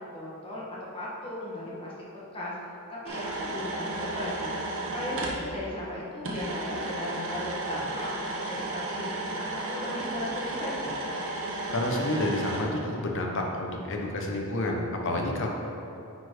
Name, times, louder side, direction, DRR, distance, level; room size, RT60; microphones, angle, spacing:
voice 1, 0.1-1.9 2.3-2.5 2.9-4.6 4.9-10.9, left 1 dB, 25° left, -6 dB, 1.7 m, -36 dB
sound 1, 3.1-5.4 6.2-12.6, right 2 dB, 60° right, 1.2 m, -33 dB
voice 2, 11.7-15.5, left 1 dB, 60° left, 1 dB, 1.0 m, -29 dB
9.4 x 4.4 x 4.6 m, 2.8 s
head